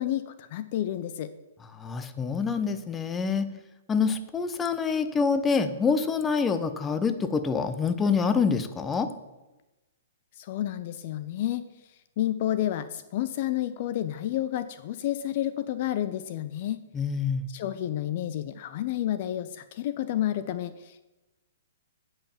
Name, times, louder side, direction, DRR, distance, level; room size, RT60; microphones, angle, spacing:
voice 1, 0.0-1.3 10.4-11.6 12.2-16.8 17.5-21.0, left 12 dB, 50° left, 13 dB, 0.5 m, -30 dB
voice 2, 1.7-3.5 3.9-9.1 16.9-17.5, left 5 dB, 15° left, 10 dB, 0.7 m, -26 dB
9.0 x 5.6 x 7.1 m, 1.1 s
hypercardioid pair, 135°, 0 cm